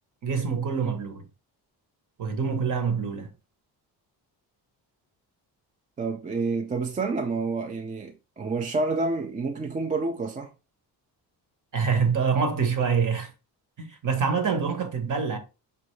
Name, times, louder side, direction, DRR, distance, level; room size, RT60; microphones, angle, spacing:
voice 1, 0.2-1.2 2.2-3.3 11.7-13.3 13.8-15.4, right 5 dB, 50° right, 1.0 m, -25 dB
voice 2, 6.0-10.5, right 3 dB, 20° right, 0.3 m, -28 dB
5.4 x 2.5 x 3.1 m
cardioid pair, 140°, 41 cm